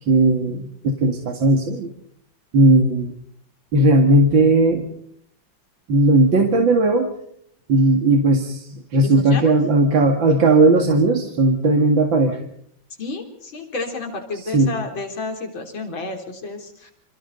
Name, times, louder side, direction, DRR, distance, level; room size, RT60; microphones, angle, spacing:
voice 1, 0.0-1.9 2.5-3.1 3.7-4.8 5.9-7.1 7.7-12.4 14.3-14.7, right 2 dB, 75° right, 3 dB, 2.8 m, -17 dB
voice 2, 9.0-9.5 13.0-16.9, left 3 dB, 90° left, 4 dB, 4.2 m, -31 dB
28.5 x 28.0 x 4.0 m, 0.67 s
omnidirectional pair, 2.1 m